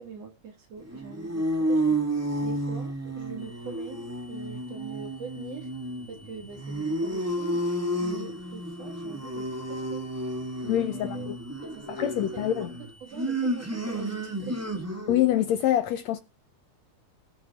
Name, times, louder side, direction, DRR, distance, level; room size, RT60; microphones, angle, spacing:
voice 1, 0.0-2.0 2.4-5.7 6.1-7.7 8.0-10.1 10.6-11.3 11.6-12.7 13.0-14.8, right 6 dB, 55° right, 2.6 m, -43 dB
sound 1, 0.8-15.3, right 1 dB, 20° right, 0.4 m, -31 dB
sound 2, 3.4-14.8, equal, 80° right, 6.0 m, -56 dB
voice 2, 10.7-11.3 12.0-12.7 15.1-16.2, left 12 dB, 80° left, 1.6 m, -25 dB
18.0 x 7.8 x 3.5 m
omnidirectional pair, 3.9 m